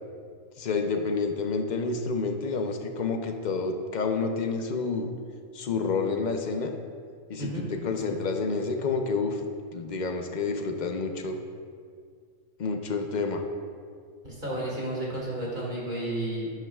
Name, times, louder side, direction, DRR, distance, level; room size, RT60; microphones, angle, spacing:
voice 1, 0.6-5.1 5.5-6.7 7.3-7.5 7.8-9.4 9.7-11.4 12.6-13.4, left 4 dB, 45° left, 5 dB, 0.6 m, -29 dB
voice 2, 14.2-16.5, right 1 dB, 35° right, -5 dB, 2.2 m, -32 dB
12.0 x 9.1 x 2.4 m, 2.1 s
omnidirectional pair, 1.4 m